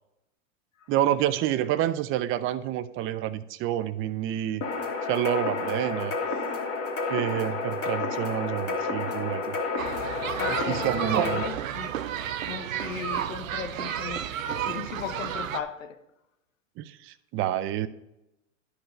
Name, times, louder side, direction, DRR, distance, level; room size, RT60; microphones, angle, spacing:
voice 1, 0.9-4.6 5.0-6.1 7.1-9.6 10.5-11.5 16.8-17.9, right 12 dB, 35° right, 0.5 m, -28 dB
sound 1, 4.6-11.5, left 4 dB, 40° left, 2.1 m, -30 dB
sound 2, 9.8-15.6, right 10 dB, 85° right, 0.8 m, -32 dB
voice 2, 10.4-11.9 12.5-16.0, left 8 dB, 75° left, 1.2 m, -37 dB
11.5 x 5.5 x 5.1 m
hypercardioid pair, 105°, 39 cm